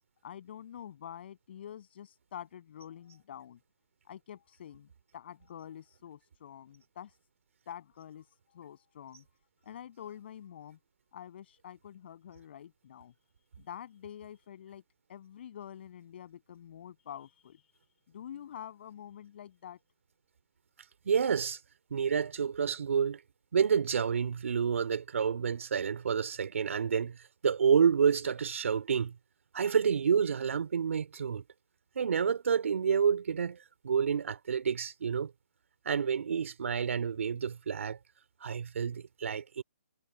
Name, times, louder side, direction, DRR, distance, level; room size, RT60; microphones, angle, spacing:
voice 1, 0.2-3.6 4.1-7.2 7.7-9.2 9.6-10.8 11.1-13.1 13.6-14.8 15.1-17.9 18.1-19.8, left 9 dB, 45° left, 7.3 m, -47 dB
voice 2, 21.1-21.6 21.9-23.2 23.5-27.2 27.4-29.2 29.5-31.4 32.0-33.6 33.8-35.3 35.9-38.0 38.4-39.6, right 7 dB, 65° right, 3.5 m, -29 dB
hypercardioid pair, 155°, 8 cm